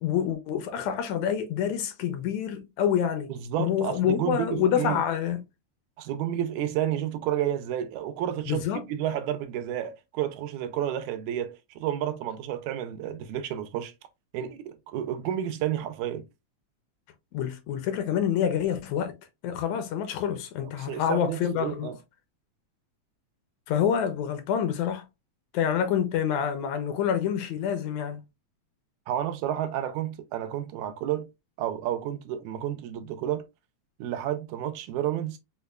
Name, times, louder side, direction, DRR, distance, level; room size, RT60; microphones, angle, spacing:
voice 1, 0.0-3.3 3.6-5.4 8.5-8.8 17.3-19.2 19.4-21.9 23.7-25.0 25.5-28.2, left 9 dB, 80° left, 1.8 m, -27 dB
voice 2, 3.3-5.0 6.0-13.9 14.3-16.3 20.8-22.0 29.1-31.3 31.6-33.4 34.0-35.4, right 11 dB, 85° right, 2.0 m, -31 dB
5.2 x 2.2 x 2.3 m
omnidirectional pair, 3.4 m